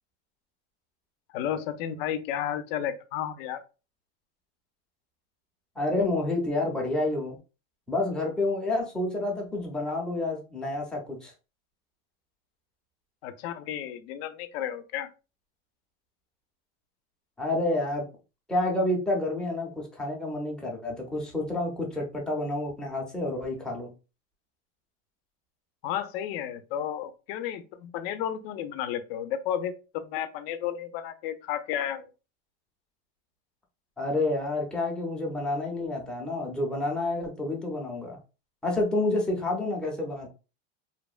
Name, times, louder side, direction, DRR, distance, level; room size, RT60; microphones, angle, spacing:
voice 1, 1.3-3.6 13.2-15.1 25.8-32.1, left 10 dB, 60° left, 0.5 m, -32 dB
voice 2, 5.8-7.4 7.9-11.3 17.4-18.0 18.5-23.9 34.0-38.2 38.6-40.3, left 2 dB, ahead, 0.5 m, -29 dB
2.8 x 2.1 x 2.4 m
supercardioid pair, 145°, 34 cm